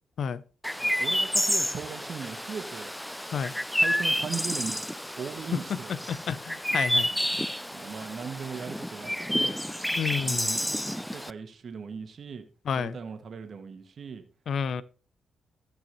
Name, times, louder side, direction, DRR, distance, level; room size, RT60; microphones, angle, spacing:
Chirp tweet, 0.6-11.3, equal, 5° left, 0.4 m, -30 dB
voice 1, 0.8-2.9 3.7-4.8 5.2-6.2 7.0-7.3 7.7-9.6 10.2-10.7 11.0-12.4 12.7-14.2, right 6 dB, 55° right, 1.7 m, -39 dB
voice 2, 5.5-7.1 10.0-10.6 12.7-13.0 14.5-14.8, left 7 dB, 65° left, 0.5 m, -30 dB
16.0 x 6.2 x 3.1 m
hypercardioid pair, 40°, 0 cm